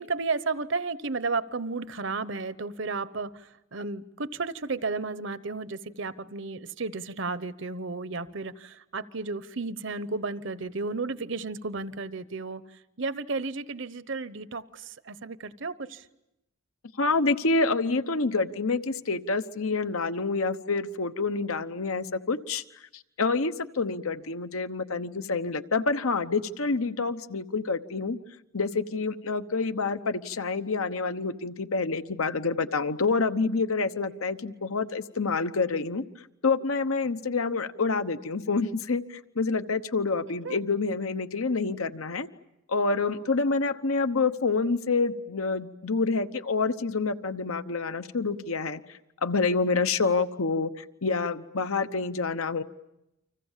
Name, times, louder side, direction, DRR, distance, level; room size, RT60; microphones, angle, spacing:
voice 1, 0.0-12.6 13.0-16.0 40.4-40.6 43.0-43.3, right 3 dB, 55° right, 15 dB, 0.9 m, -33 dB
voice 2, 17.0-22.6 23.2-28.2 28.5-36.0 36.4-42.3 42.7-48.8 49.2-52.6, left 4 dB, 80° left, 10 dB, 1.1 m, -27 dB
30.0 x 25.5 x 7.4 m, 0.89 s
head